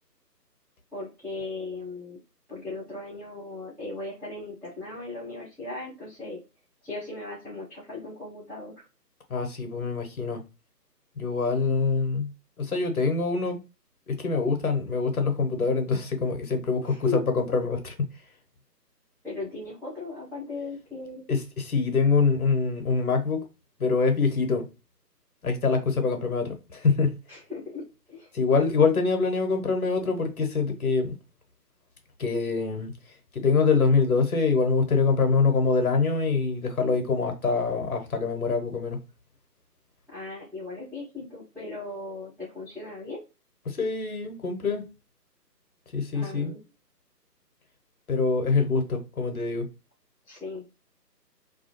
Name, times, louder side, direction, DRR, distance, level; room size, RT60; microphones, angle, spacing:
voice 1, 0.9-2.2 2.5-6.4 6.8-8.9 16.9-17.2 19.2-21.2 27.3-28.3 40.1-43.2 46.1-46.6 50.3-50.6, left 3 dB, ahead, 0.5 m, -37 dB
voice 2, 9.3-10.4 11.2-12.3 12.6-13.6 14.1-18.1 21.3-23.4 23.8-24.7 25.4-27.2 28.3-31.1 32.2-32.9 33.3-39.0 43.7-44.8 45.9-46.5 48.1-49.7, left 4 dB, 60° left, 0.9 m, -25 dB
2.4 x 2.2 x 2.8 m
figure-of-eight pair, 150°, 49 cm